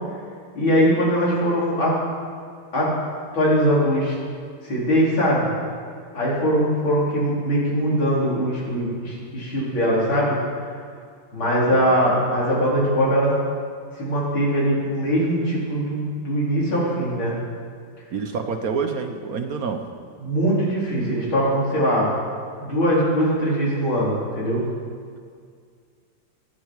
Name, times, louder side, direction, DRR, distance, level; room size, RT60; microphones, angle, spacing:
voice 1, 0.6-2.0 2.7-3.0 3.3-4.1 4.6-5.5 6.1-10.4 11.3-13.3 14.0-17.4 20.2-22.1 22.6-24.6, equal, 75° left, -6 dB, 5.3 m, -21 dB
voice 2, 18.1-19.8, right 5 dB, 55° right, 6 dB, 1.2 m, -27 dB
21.5 x 11.5 x 4.9 m, 2.1 s
omnidirectional pair, 2.2 m